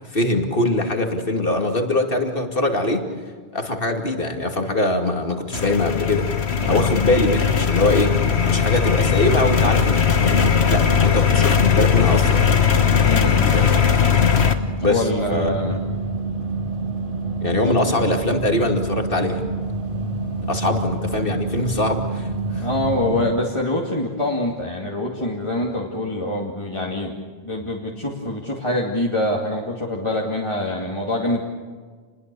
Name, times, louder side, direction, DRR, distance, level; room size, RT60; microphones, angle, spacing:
voice 1, 0.1-3.1 3.5-6.3 6.7-8.2 8.5-12.4 13.5-13.7 14.8-15.6 17.4-19.4 20.5-22.7, left 2 dB, 50° left, 4 dB, 2.7 m, -22 dB
sound 1, 5.5-14.5, left 7 dB, 65° left, 1.6 m, -18 dB
voice 2, 6.6-6.9 13.0-13.5 14.9-15.8 17.6-17.8 22.6-27.1 27.4-31.4, left 1 dB, 25° left, -3 dB, 2.5 m, -25 dB
sound 2, 14.5-23.2, right 3 dB, 50° right, 3.2 m, -27 dB
29.0 x 21.0 x 6.9 m, 1.6 s
omnidirectional pair, 1.2 m